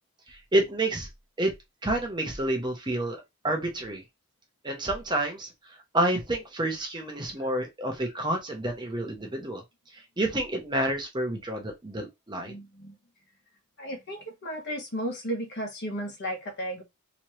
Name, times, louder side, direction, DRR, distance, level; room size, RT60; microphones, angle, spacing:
voice 1, 0.3-1.1 1.4-1.5 1.8-3.2 3.4-4.0 4.6-5.5 5.9-9.6 9.9-12.5, right 1 dB, 20° right, 0.8 m, -29 dB
voice 2, 12.4-12.9 13.8-16.8, equal, 50° left, 1.2 m, -34 dB
3.4 x 3.0 x 3.1 m
head